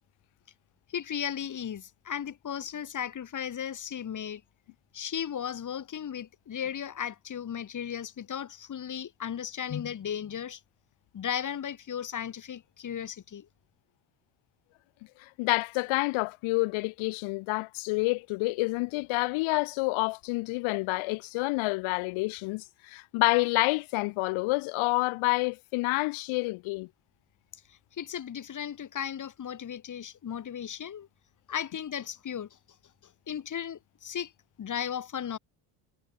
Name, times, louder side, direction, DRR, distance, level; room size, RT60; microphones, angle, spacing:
voice 1, 0.9-4.4 4.9-10.6 11.1-13.5 27.7-31.1 31.5-32.6 33.0-34.3 34.6-35.4, left 9 dB, 40° left, 1.9 m, -36 dB
voice 2, 15.2-26.9, left 25 dB, 70° left, 0.9 m, -28 dB
supercardioid pair, 95°, 49 cm